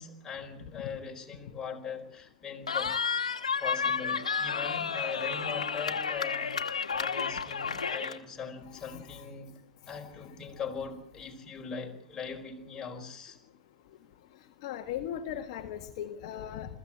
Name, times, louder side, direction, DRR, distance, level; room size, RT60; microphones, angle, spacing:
voice 1, 0.0-3.0 3.6-9.5 9.9-13.4, left 6 dB, 15° left, 1 dB, 4.4 m, -40 dB
Cheering, 2.7-8.2, left 6 dB, 80° left, 1.7 m, -31 dB
voice 2, 8.7-9.3 9.9-10.0 14.6-16.8, left 10 dB, 50° left, 4 dB, 1.7 m, -38 dB
22.5 x 15.0 x 8.8 m, 0.69 s
hypercardioid pair, 110°, 4 cm